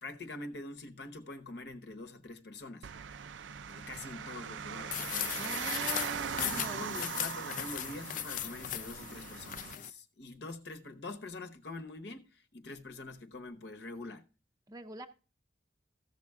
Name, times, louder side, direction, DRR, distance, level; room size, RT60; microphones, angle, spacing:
voice 1, 0.0-2.9 3.7-5.8 6.4-14.2, left 2 dB, 65° left, 1.0 m, -45 dB
sound 1, 2.8-9.7, right 7 dB, 80° right, 0.5 m, -40 dB
sound 2, 4.9-9.9, left 12 dB, 45° left, 0.4 m, -38 dB
voice 2, 5.4-7.0 14.7-15.1, right 1 dB, 20° right, 0.5 m, -45 dB
14.5 x 6.5 x 3.5 m
head